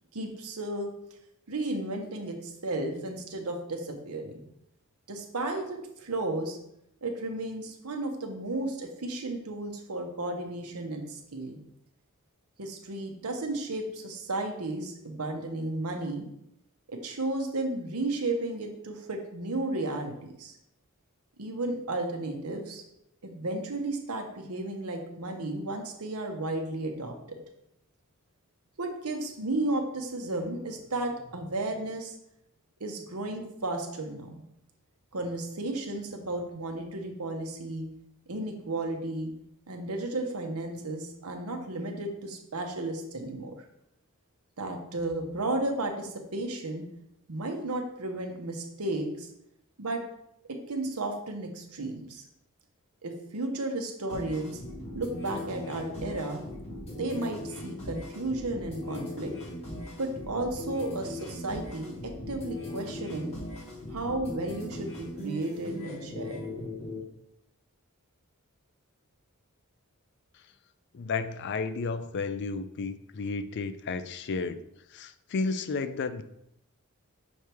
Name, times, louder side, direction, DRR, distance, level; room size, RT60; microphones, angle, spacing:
voice 1, 0.1-0.9 1.5-4.4 5.1-6.6 7.0-11.6 12.6-16.3 16.9-20.5 21.4-22.8 23.2-27.1 28.8-32.1 32.8-34.4 35.1-37.9 38.3-39.3 39.7-43.5 44.6-46.8 47.3-49.3 49.8-50.0 50.5-52.2 53.0-54.6 54.9-56.4 57.0-59.3 60.0-63.3 63.9-66.4, right 2 dB, 80° right, 3 dB, 1.0 m, -33 dB
sound 1, 54.1-67.0, left 1 dB, 30° left, 2.2 m, -39 dB
voice 2, 70.9-74.6 74.9-76.2, left 4 dB, 50° left, 11 dB, 0.4 m, -32 dB
6.4 x 3.4 x 4.5 m, 0.78 s
head